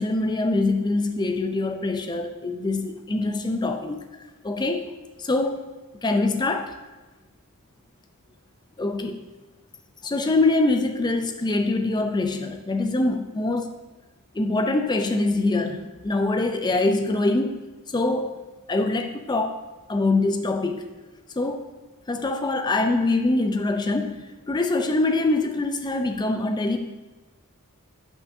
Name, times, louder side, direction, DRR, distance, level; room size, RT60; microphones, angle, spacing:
voice 1, 0.0-4.0 4.4-4.9 5.2-5.6 6.0-6.7 8.8-9.2 10.0-13.7 14.3-17.6 17.9-18.3 18.7-19.6 19.9-20.9 21.4-21.6 22.1-26.8, left 2 dB, 20° left, 6 dB, 0.4 m, -24 dB
8.0 x 5.5 x 2.7 m, 1.2 s
head